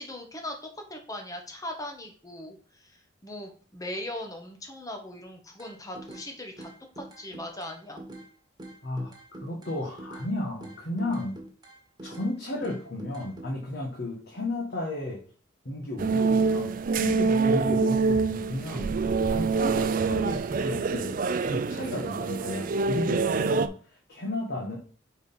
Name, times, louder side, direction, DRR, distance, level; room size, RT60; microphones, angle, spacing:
voice 1, 0.0-6.7 7.0-8.0, left 1 dB, 20° left, 3 dB, 1.2 m, -39 dB
sound 1, 5.6-6.3 6.6-8.3 8.6-10.3 10.6-12.3 12.6-13.5, right 1 dB, 20° right, 1.6 m, -44 dB
voice 2, 9.4-11.3 12.0-15.2 15.6-18.9 19.3-21.1 21.4-24.8, left 1 dB, 60° left, -2 dB, 1.4 m, -33 dB
sound 2, 16.0-23.7, right 4 dB, 45° right, 0.4 m, -26 dB
4.8 x 4.3 x 5.4 m, 0.42 s
head